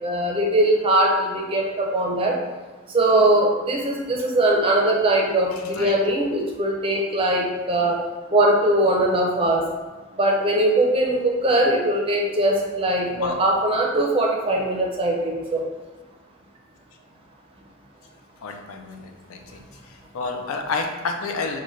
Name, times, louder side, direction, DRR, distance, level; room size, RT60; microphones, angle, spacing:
voice 1, 0.0-2.4 2.9-8.0 8.3-9.6 10.2-15.7, right 1 dB, 25° right, -1 dB, 0.5 m, -21 dB
voice 2, 18.4-19.6 19.9-21.6, left 4 dB, 90° left, 3 dB, 0.5 m, -30 dB
3.9 x 2.2 x 3.1 m, 1.3 s
head